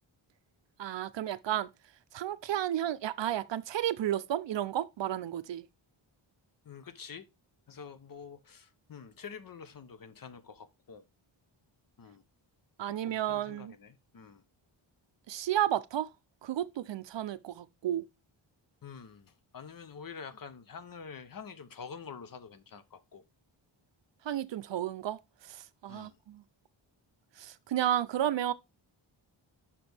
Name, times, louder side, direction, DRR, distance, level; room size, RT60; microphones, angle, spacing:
voice 1, 0.8-1.7 2.1-5.7 12.8-13.7 15.3-16.1 16.4-18.1 24.2-25.2 25.4-26.4 27.4-28.5, right 11 dB, 65° right, 0.5 m, -32 dB
voice 2, 6.6-7.3 7.7-11.0 12.0-12.2 13.1-14.4 18.8-23.2 25.9-26.2, left 6 dB, 45° left, 0.7 m, -47 dB
6.1 x 5.8 x 3.3 m
wide cardioid pair, 155°, 49 cm